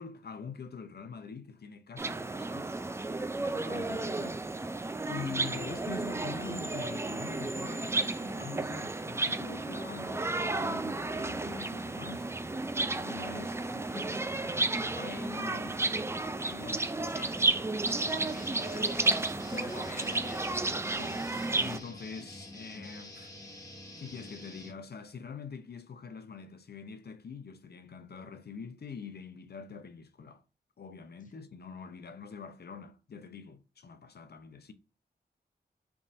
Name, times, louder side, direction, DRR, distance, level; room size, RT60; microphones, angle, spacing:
voice 1, 0.0-3.0 3.5-4.4 5.1-12.3 12.8-17.3 17.9-18.3 19.5-19.8 20.9-23.6 24.0-30.4 30.8-34.7, left 5 dB, 65° left, 0.7 m, -45 dB
sound 1, 2.0-21.8, right 2 dB, 15° right, 0.3 m, -32 dB
voice 2, 17.1-17.7 17.9-19.2 19.5-20.7, left 3 dB, 45° left, 1.1 m, -47 dB
sound 2, 17.9-24.7, left 1 dB, 20° left, 1.0 m, -47 dB
3.6 x 2.5 x 4.1 m
cardioid pair, 55°, 18 cm